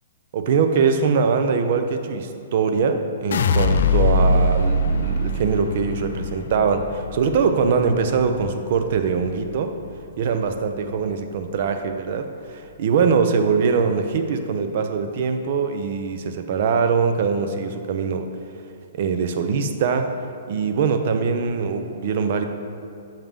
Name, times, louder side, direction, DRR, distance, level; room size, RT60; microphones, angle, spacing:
voice 1, 0.3-9.8 10.2-18.3 18.9-20.1 20.5-22.4, right 5 dB, 50° right, 7 dB, 0.5 m, -22 dB
sound 1, 3.3-9.5 9.9-10.5, left 2 dB, 70° left, 0.3 m, -23 dB
7.1 x 5.4 x 3.6 m, 2.6 s
hypercardioid pair, 155°, 0 cm